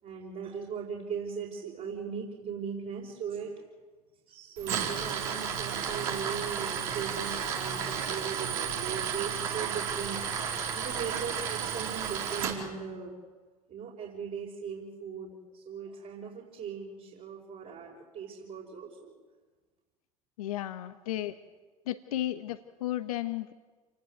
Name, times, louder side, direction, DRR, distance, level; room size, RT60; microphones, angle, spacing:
voice 1, 0.0-3.6 4.3-13.2 13.7-19.1, right 6 dB, 45° right, -2 dB, 5.2 m, -39 dB
Tools, 4.6-12.5, right 7 dB, 70° right, 4.3 m, -33 dB
voice 2, 20.4-21.4 21.9-23.5, left 14 dB, 75° left, 10 dB, 1.1 m, -34 dB
28.5 x 19.0 x 8.1 m, 1.4 s
hypercardioid pair, 70°, 19 cm